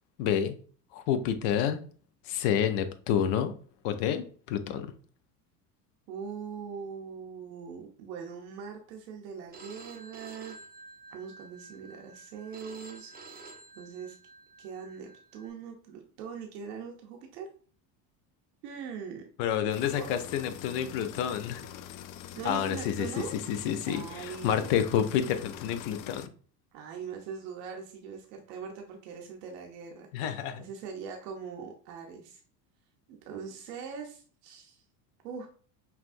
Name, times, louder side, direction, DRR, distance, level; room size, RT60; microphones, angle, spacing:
voice 1, 0.2-0.5 0.9-1.8 2.3-3.5 3.8-4.9 19.4-21.6 22.4-26.3 30.1-30.6, left 9 dB, 70° left, 0.8 m, -29 dB
voice 2, 6.1-10.6 11.1-13.1 13.8-14.2 14.6-17.5 18.6-19.2 19.9-20.1 22.3-23.3 23.9-24.7 26.7-30.1 30.6-32.4 33.2-34.8 35.2-35.5, right 6 dB, 85° right, 0.8 m, -41 dB
Telephone, 9.5-15.5, right 3 dB, 20° right, 0.5 m, -50 dB
sound 1, 19.7-26.3, left 10 dB, 45° left, 0.4 m, -44 dB
5.8 x 2.3 x 2.5 m
supercardioid pair, 95°, 47 cm